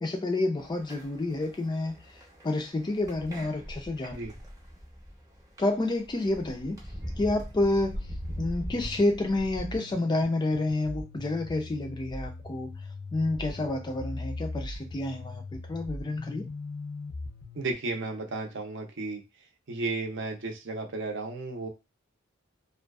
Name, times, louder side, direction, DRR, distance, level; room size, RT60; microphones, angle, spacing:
voice 1, 0.0-4.2 5.6-6.8 7.2-12.8 13.1-16.4, left 2 dB, 20° left, 4 dB, 0.3 m, -29 dB
sound 1, 0.6-9.6, equal, 15° right, 0.7 m, -42 dB
sound 2, 7.7-17.7, left 2 dB, 85° left, 0.6 m, -40 dB
voice 2, 17.5-19.2 19.7-21.7, right 3 dB, 60° right, 3 dB, 0.6 m, -33 dB
2.4 x 2.3 x 2.3 m, 0.25 s
head